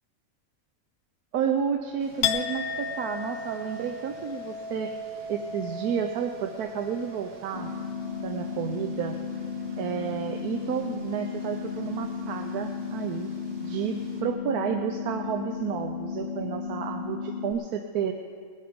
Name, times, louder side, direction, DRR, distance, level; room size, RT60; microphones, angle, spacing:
voice 1, 1.3-4.9 5.3-7.7 8.2-9.2 9.8-13.3 13.6-18.1, right 7 dB, 75° right, 5 dB, 1.2 m, -31 dB
sound 1, 2.0-14.2, right 2 dB, 60° right, 1.9 m, -53 dB
Chink clink, 2.2-9.9 10.3-10.9, left 5 dB, 80° left, 1.3 m, -36 dB
sound 2, 7.5-17.5, left 6 dB, 45° left, 0.6 m, -34 dB
20.0 x 8.7 x 5.1 m, 2.1 s
omnidirectional pair, 1.6 m